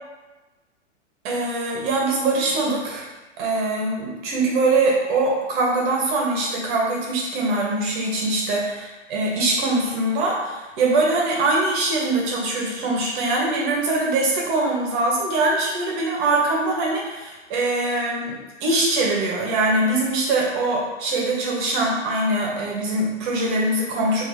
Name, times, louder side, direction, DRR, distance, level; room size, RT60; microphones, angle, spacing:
voice 1, 1.2-3.1 3.4-24.2, right 2 dB, 45° right, -3 dB, 1.2 m, -22 dB
4.6 x 2.9 x 2.7 m, 1.1 s
hypercardioid pair, 130°, 36 cm